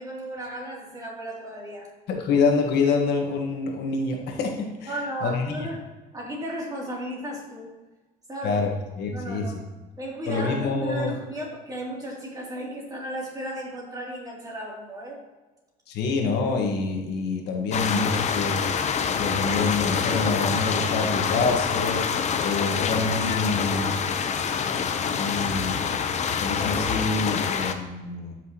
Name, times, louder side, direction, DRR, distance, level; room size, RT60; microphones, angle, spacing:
voice 1, 0.0-1.9 4.9-5.9 6.1-7.7 8.3-8.6 9.1-9.6 10.0-15.2, right 1 dB, 20° right, -3 dB, 2.8 m, -34 dB
voice 2, 2.1-4.9 5.2-5.6 8.4-8.7 9.0-9.4 10.3-11.1 15.9-18.6 19.1-22.0 22.4-23.9 25.1-25.8 26.4-28.3, left 4 dB, 75° left, 1 dB, 1.4 m, -26 dB
sound 1, 17.7-27.7, left 6 dB, 45° left, 0.7 m, -26 dB
13.0 x 6.0 x 3.0 m, 1.2 s
cardioid pair, 110°, 17 cm